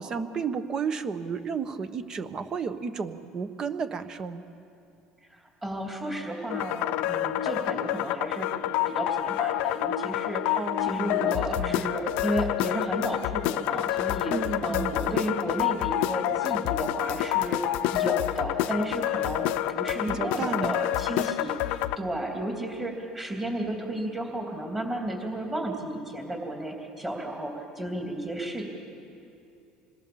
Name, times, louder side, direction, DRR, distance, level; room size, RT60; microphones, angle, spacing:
voice 1, 0.0-4.4 10.5-12.0 14.3-15.2 20.1-20.8, right 5 dB, 30° right, 10 dB, 1.3 m, -33 dB
voice 2, 5.3-8.5 8.9-28.7, right 1 dB, 15° right, 0 dB, 3.2 m, -33 dB
sound 1, 6.5-22.0, left 14 dB, 70° left, 0.7 m, -28 dB
26.0 x 21.5 x 7.1 m, 2.7 s
cardioid pair, 135°, 2 cm